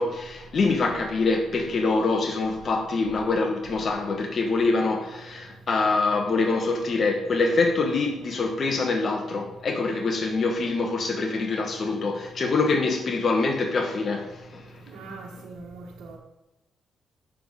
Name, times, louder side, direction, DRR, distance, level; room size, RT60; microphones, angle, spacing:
voice 1, 0.0-14.6, left 3 dB, 45° left, 1.1 m, -25 dB
voice 2, 14.9-16.2, right 3 dB, 80° right, 1.4 m, -41 dB
7.7 x 6.3 x 5.1 m
cardioid pair, 90°, 0 cm